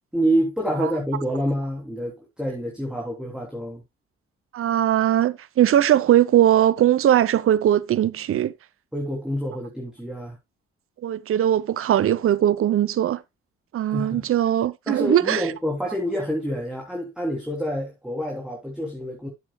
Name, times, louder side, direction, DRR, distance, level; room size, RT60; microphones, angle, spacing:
voice 1, 0.1-3.8 8.9-10.4 13.9-14.2 14.9-19.3, equal, 5° right, 3.3 m, -27 dB
voice 2, 4.5-8.5 11.0-13.2 13.7-15.4, right 11 dB, 45° right, 0.7 m, -20 dB
12.0 x 7.5 x 2.3 m
hypercardioid pair, 45°, 30 cm